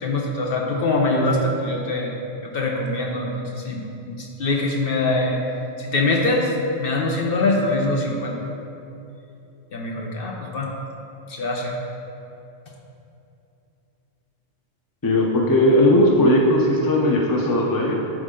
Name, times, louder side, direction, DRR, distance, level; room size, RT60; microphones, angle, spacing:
voice 1, 0.0-2.1 2.4-3.8 4.1-5.4 5.8-6.5 6.8-8.4 9.7-10.7 11.3-11.8, left 2 dB, 55° left, 0 dB, 0.9 m, -23 dB
voice 2, 15.0-17.9, left 1 dB, 25° left, -1 dB, 0.6 m, -18 dB
11.0 x 4.1 x 3.8 m, 2.8 s
omnidirectional pair, 1.2 m